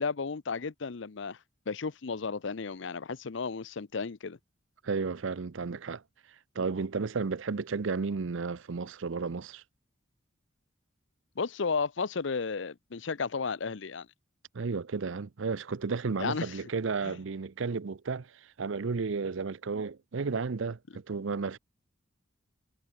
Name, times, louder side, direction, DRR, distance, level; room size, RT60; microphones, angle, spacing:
voice 1, 0.0-1.4 1.7-4.4 11.4-14.1 16.2-16.6 17.0-17.2, left 5 dB, 65° left, 0.6 m, -33 dB
voice 2, 4.8-6.0 6.5-9.6 14.5-18.3 18.6-21.6, right 4 dB, 70° right, 0.6 m, -33 dB
head